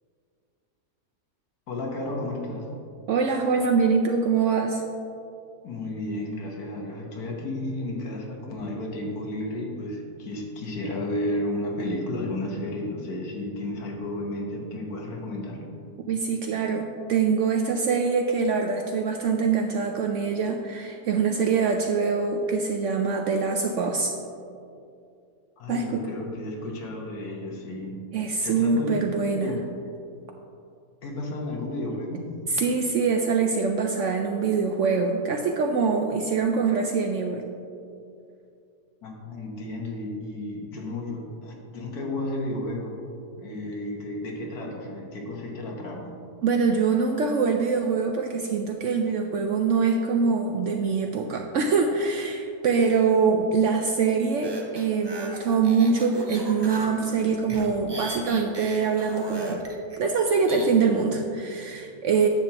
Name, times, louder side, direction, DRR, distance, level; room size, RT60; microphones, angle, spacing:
voice 1, 1.7-2.7 5.6-15.6 25.6-28.1 28.3-28.9 29.4-29.6 31.0-32.3 39.0-43.0 43.4-46.1, left 1 dB, 70° left, 0 dB, 1.7 m, -32 dB
voice 2, 3.1-4.8 16.1-24.1 25.7-26.0 28.1-29.6 32.5-37.4 46.4-59.6 60.0-62.3, right 5 dB, 70° right, 3 dB, 0.7 m, -24 dB
sound 1, 54.4-60.7, right 2 dB, 30° right, 0.5 m, -38 dB
10.0 x 7.3 x 2.9 m, 2.5 s
omnidirectional pair, 1.7 m